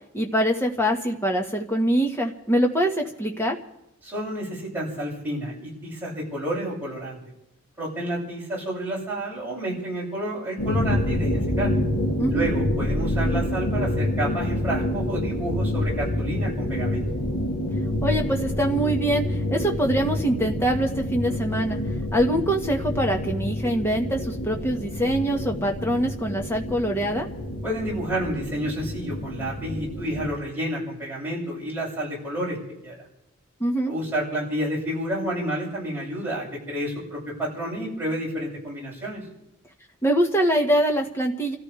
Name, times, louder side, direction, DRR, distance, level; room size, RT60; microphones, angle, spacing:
voice 1, 0.1-3.6 12.2-12.5 18.0-21.8 22.1-27.3 33.6-33.9 40.0-41.6, right 1 dB, 10° left, 2 dB, 1.6 m, -24 dB
voice 2, 4.0-7.2 7.8-11.7 12.3-17.0 27.6-32.6 32.8-33.0 33.9-39.2, right 1 dB, 10° right, -6 dB, 7.3 m, -30 dB
sound 1, 10.6-30.3, left 1 dB, 90° left, 2.0 m, -27 dB
29.0 x 14.0 x 3.4 m, 0.85 s
head